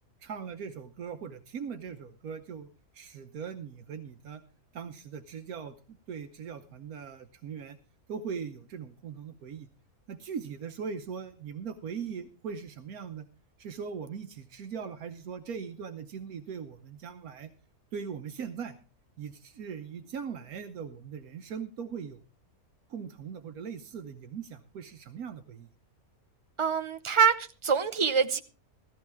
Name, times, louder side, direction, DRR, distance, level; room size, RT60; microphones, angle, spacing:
voice 1, 0.2-2.7 2.9-4.4 4.7-7.8 8.1-9.7 10.1-13.3 13.6-17.5 17.9-18.8 19.2-22.2 22.9-25.7, right 6 dB, 80° right, 8 dB, 1.3 m, -40 dB
voice 2, 26.6-28.4, right 6 dB, 30° right, 10 dB, 0.5 m, -25 dB
15.5 x 14.5 x 3.5 m, 0.33 s
omnidirectional pair, 1.5 m